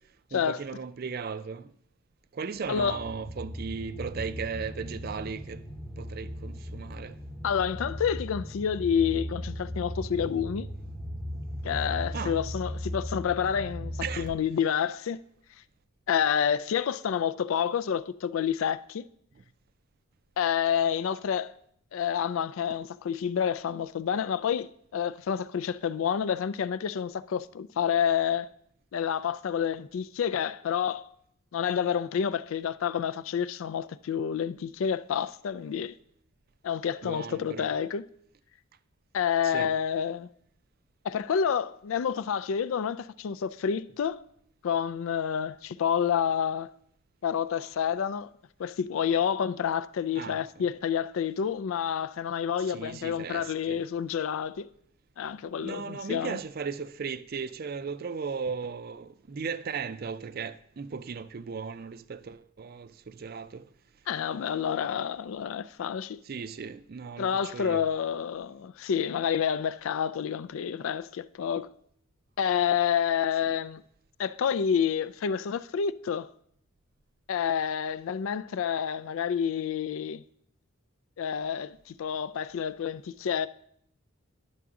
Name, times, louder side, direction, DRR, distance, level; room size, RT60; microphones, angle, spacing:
voice 1, 0.3-1.7 2.3-5.6 6.0-7.2 12.1-12.4 14.0-14.3 37.0-37.7 39.4-39.7 50.2-50.6 52.7-53.8 55.6-63.7 66.2-67.8, right 5 dB, 45° right, 0.4 m, -36 dB
sound 1, 2.6-14.3, equal, ahead, 0.7 m, -37 dB
voice 2, 2.7-3.0 7.4-10.7 11.6-15.2 16.1-19.1 20.4-21.5 21.9-28.5 28.9-31.1 31.5-35.9 36.6-38.0 39.1-40.3 41.0-44.2 44.6-46.7 47.2-48.3 48.6-54.7 55.2-56.4 64.1-66.2 67.2-71.7 72.4-73.8 74.2-76.3 77.3-80.2 81.2-83.5, left 8 dB, 70° left, 0.3 m, -29 dB
10.5 x 6.9 x 3.7 m
head